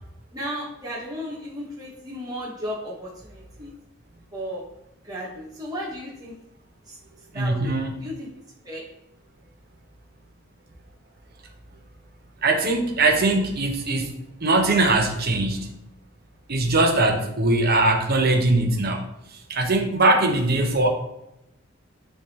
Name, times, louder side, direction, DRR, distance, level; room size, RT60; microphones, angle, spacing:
voice 1, 0.3-3.7 4.3-4.7 5.0-6.3 6.8-7.0 7.3-7.7 8.0-8.3 8.6-8.8, equal, 20° right, -5 dB, 1.1 m, -34 dB
voice 2, 7.3-8.0 12.4-14.1 14.4-15.7 16.5-19.0 19.5-20.9, right 2 dB, 50° right, 3 dB, 0.9 m, -21 dB
9.7 x 3.5 x 2.9 m, 0.82 s
head